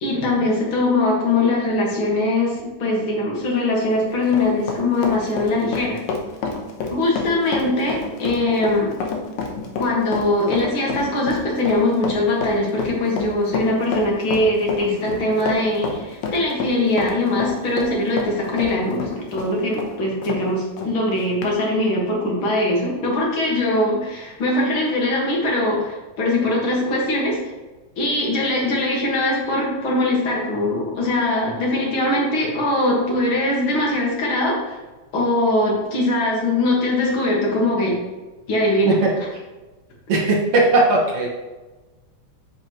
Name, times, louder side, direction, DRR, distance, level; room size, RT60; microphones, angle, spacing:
voice 1, 0.0-6.0 6.9-8.9 9.8-27.4 28.0-34.8 35.1-38.0 38.5-39.0, left 2 dB, 45° left, -2 dB, 2.1 m, -21 dB
Run, 3.8-20.4 20.8-20.9 21.4-21.5, left 4 dB, 70° left, 2.1 m, -29 dB
voice 2, 40.1-41.3, right 2 dB, 55° right, -3 dB, 2.2 m, -18 dB
7.8 x 7.4 x 3.0 m, 1.2 s
omnidirectional pair, 3.6 m